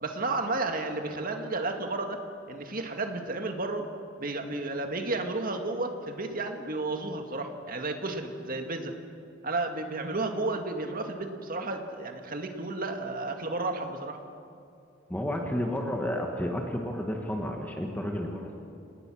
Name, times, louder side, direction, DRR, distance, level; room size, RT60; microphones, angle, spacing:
voice 1, 0.0-2.2 2.5-3.9 4.2-8.9 9.4-14.2, right 2 dB, 45° right, 5 dB, 2.0 m, -32 dB
voice 2, 15.1-18.5, equal, 10° left, 1 dB, 1.6 m, -31 dB
29.0 x 19.5 x 6.3 m, 2.5 s
head